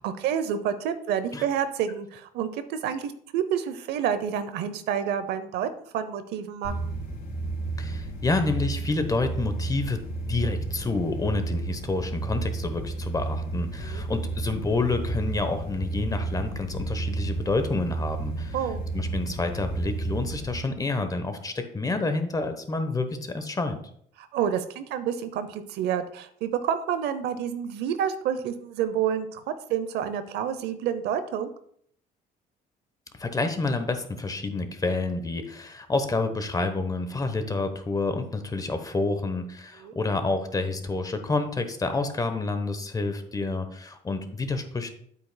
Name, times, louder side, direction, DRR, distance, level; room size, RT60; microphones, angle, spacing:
voice 1, 0.0-6.7 13.8-14.0 18.5-18.8 24.2-31.5 39.8-40.0, right 8 dB, 80° right, 11 dB, 0.7 m, -29 dB
sound 1, 6.6-20.6, right 3 dB, 70° left, 3.3 m, -32 dB
voice 2, 7.8-10.0 10.3-18.6 18.9-23.8 33.2-44.9, left 3 dB, 20° left, 8 dB, 1.0 m, -28 dB
9.2 x 8.3 x 2.3 m, 0.64 s
cardioid pair, 110°, 17 cm